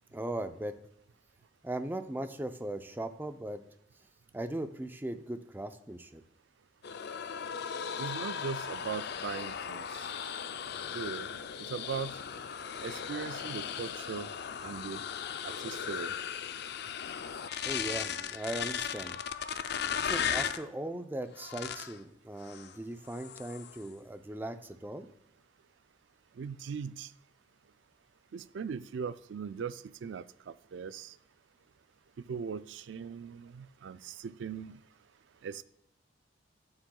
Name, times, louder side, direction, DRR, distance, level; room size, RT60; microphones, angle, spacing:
voice 1, 0.1-0.7 1.6-3.6 4.3-6.2 17.7-19.1 19.7-25.1, right 1 dB, 10° right, 9 dB, 0.5 m, -38 dB
sound 1, 6.8-20.6 21.4-22.0 22.4-22.7 23.1-23.8, left 7 dB, 60° left, 0.5 m, -37 dB
voice 2, 8.0-10.1 10.9-12.2 12.8-14.3 14.6-15.0 15.4-16.2 26.4-27.1 28.3-31.1 32.2-34.8 35.4-35.6, right 6 dB, 70° right, 15 dB, 0.4 m, -39 dB
11.5 x 8.9 x 2.3 m, 0.76 s
head